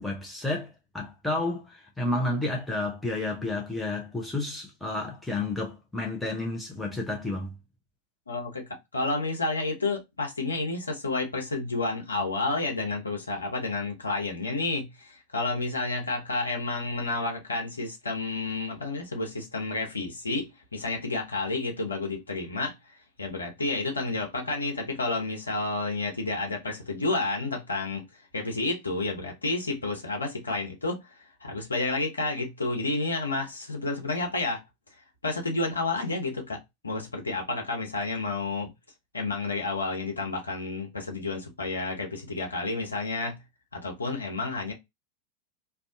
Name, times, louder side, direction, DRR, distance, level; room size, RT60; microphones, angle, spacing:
voice 1, 0.0-7.5, left 2 dB, 5° left, 0.6 m, -31 dB
voice 2, 8.3-22.8 23.2-28.0 28.3-34.6 35.2-38.7 39.1-43.4 43.7-44.7, left 3 dB, 75° left, 0.8 m, -30 dB
2.6 x 2.3 x 2.5 m
figure-of-eight pair, 90°, 0 cm